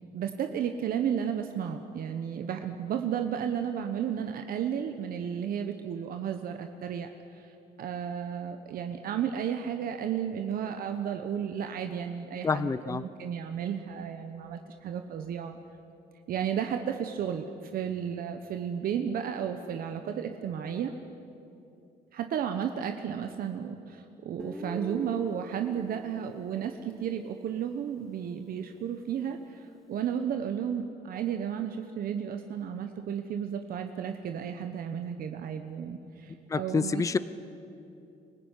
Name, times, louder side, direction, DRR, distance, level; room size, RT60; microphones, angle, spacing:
voice 1, 0.1-15.6 16.3-20.9 22.1-37.0, right 8 dB, 60° right, 6 dB, 1.2 m, -33 dB
voice 2, 12.4-13.0 36.5-37.2, left 4 dB, 20° left, 15 dB, 0.6 m, -27 dB
Guitar, 24.4-28.4, left 1 dB, ahead, 1.3 m, -44 dB
24.5 x 15.5 x 9.8 m, 2.8 s
cardioid pair, 110°, 17 cm